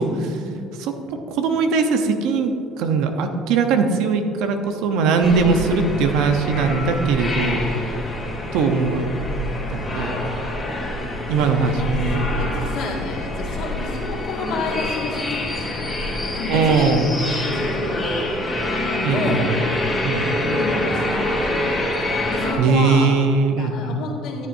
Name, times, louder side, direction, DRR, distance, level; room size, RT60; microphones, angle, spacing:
voice 1, 0.0-0.8 5.1-7.4 11.5-11.9 12.4-17.0 17.4-18.3 18.9-19.5 20.4-21.9 22.3-23.1 23.6-24.5, left 3 dB, 65° left, -2 dB, 1.9 m, -31 dB
voice 2, 0.8-7.7 8.5-9.1 9.7-10.2 11.3-12.2 16.5-17.1 19.0-19.4 20.0-20.3 22.6-23.9, right 4 dB, 75° right, 6 dB, 0.8 m, -20 dB
sound 1, 5.2-22.5, left 1 dB, 15° left, 2.2 m, -26 dB
13.5 x 7.5 x 2.7 m, 2.5 s
supercardioid pair, 90°, 0 cm